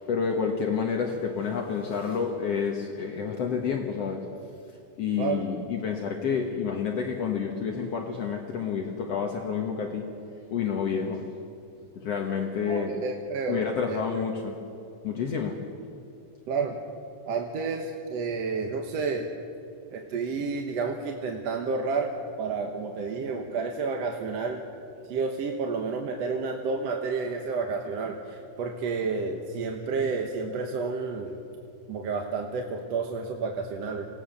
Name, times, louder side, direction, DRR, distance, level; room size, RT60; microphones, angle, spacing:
voice 1, 0.1-4.3 5.0-10.1 10.5-11.3 12.0-13.0 13.5-14.6 15.0-15.7, left 6 dB, 60° left, 1 dB, 2.3 m, -29 dB
voice 2, 12.7-14.2 16.5-16.8 17.3-19.3 19.9-22.1 22.4-24.6 25.1-31.4 31.9-34.1, right 4 dB, 60° right, 2 dB, 2.1 m, -30 dB
26.5 x 18.0 x 6.6 m, 2.7 s
omnidirectional pair, 3.5 m